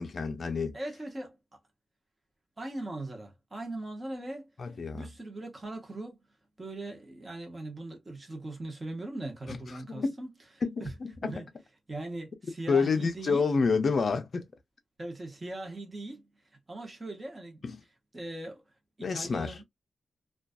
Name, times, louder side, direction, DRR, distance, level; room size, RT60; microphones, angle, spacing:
voice 1, 0.0-0.8 4.6-5.1 9.5-10.2 10.6-11.4 12.7-14.4 17.6-17.8 19.0-19.6, left 4 dB, 40° left, 0.5 m, -29 dB
voice 2, 0.7-1.4 2.6-4.5 4.9-6.2 6.6-10.3 10.8-10.9 11.2-11.5 11.9-13.4 15.0-16.3 16.7-17.6 18.1-18.6 19.0-19.6, right 2 dB, 20° right, 0.8 m, -39 dB
2.5 x 2.3 x 2.3 m
wide cardioid pair, 180°, 0 cm